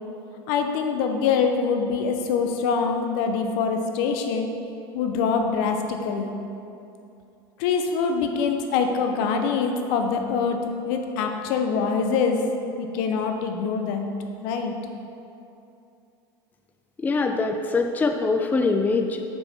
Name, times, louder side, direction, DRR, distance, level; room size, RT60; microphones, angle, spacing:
voice 1, 0.5-4.5 4.9-6.3 7.6-12.4 12.8-14.1 14.4-14.7, left 5 dB, 65° left, 5 dB, 0.6 m, -24 dB
voice 2, 17.0-19.2, left 3 dB, 15° left, 5 dB, 0.4 m, -23 dB
5.4 x 4.4 x 4.2 m, 2.7 s
hypercardioid pair, 90°, 13 cm